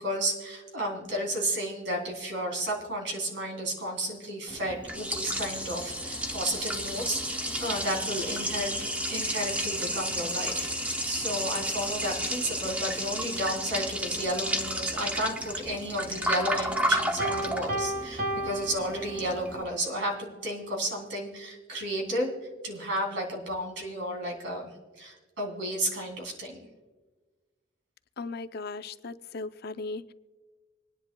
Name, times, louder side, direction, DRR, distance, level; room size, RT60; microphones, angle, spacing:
voice 1, 0.0-22.3 22.6-26.7, right 1 dB, 70° right, 0 dB, 3.2 m, -32 dB
Liquid, 4.5-19.6, equal, 10° right, 0.8 m, -32 dB
Piano, 17.2-19.6, right 1 dB, 50° right, 1.4 m, -33 dB
voice 2, 28.2-30.1, left 3 dB, 55° left, 11 dB, 0.5 m, -37 dB
26.0 x 10.0 x 2.2 m, 1.3 s
head